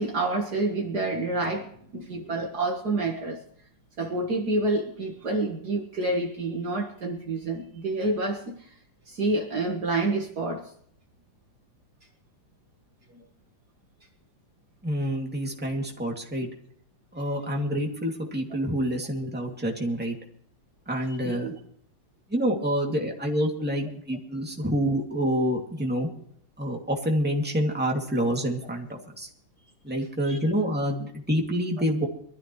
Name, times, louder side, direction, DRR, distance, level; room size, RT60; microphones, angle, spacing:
voice 1, 0.0-3.4 4.0-8.7 9.1-10.7 13.1-13.2 21.2-21.6 30.3-30.4 31.8-31.9, right 2 dB, 50° right, 1 dB, 2.1 m, -28 dB
voice 2, 14.8-16.5 17.1-20.1 20.9-21.5 22.3-26.1 26.6-28.9 29.2-29.3 29.8-32.1, equal, 5° right, 0 dB, 2.4 m, -27 dB
23.0 x 13.5 x 3.2 m, 0.62 s
omnidirectional pair, 2.3 m